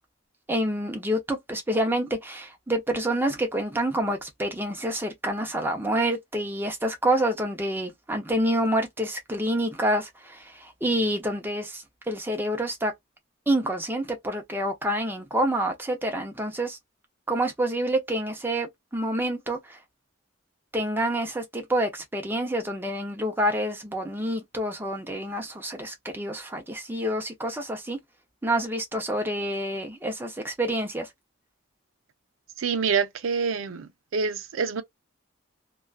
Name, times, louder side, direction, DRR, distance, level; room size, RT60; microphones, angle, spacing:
voice 1, 0.5-12.9 13.5-16.8 17.3-19.6 20.7-28.0 28.4-31.1, right 1 dB, 10° right, 0.6 m, -27 dB
voice 2, 32.6-34.8, right 5 dB, 85° right, 0.5 m, -27 dB
2.3 x 2.2 x 2.3 m
head